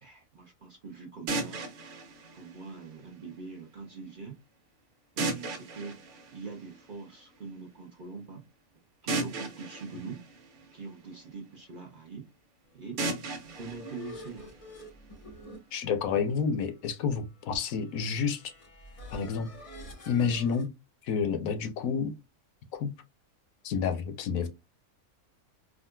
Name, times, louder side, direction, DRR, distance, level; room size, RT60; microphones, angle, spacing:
voice 1, 0.0-1.6 2.3-4.4 5.1-6.0 6.3-8.4 9.0-10.2 10.7-12.3 12.7-13.0 13.4-14.5, right 4 dB, 45° right, 0.8 m, -43 dB
sound 1, 1.3-3.3 5.2-7.1 9.1-11.3 13.0-15.0, right 3 dB, 75° right, 1.3 m, -36 dB
sound 2, 13.1-20.7, left 1 dB, 35° left, 0.6 m, -48 dB
voice 2, 15.7-18.5 19.1-19.5 20.1-20.7 21.0-22.1 22.8-22.9 23.6-24.5, left 6 dB, 75° left, 1.0 m, -29 dB
3.7 x 2.4 x 2.2 m
omnidirectional pair, 1.5 m